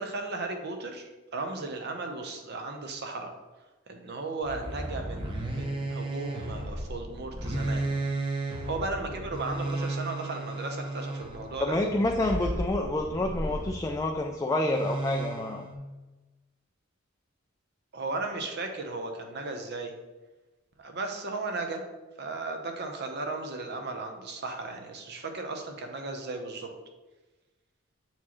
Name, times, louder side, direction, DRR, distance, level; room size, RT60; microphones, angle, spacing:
voice 1, 0.0-3.3 3.9-7.9 8.6-11.8 17.9-19.9 20.8-21.8 22.2-26.7, right 3 dB, 55° right, 4 dB, 0.8 m, -35 dB
sound 1, 4.4-14.0 14.6-15.7, right 2 dB, 25° right, 0.8 m, -34 dB
voice 2, 11.6-15.6, left 1 dB, 15° left, 2 dB, 0.3 m, -28 dB
7.2 x 4.4 x 3.0 m, 1.2 s
head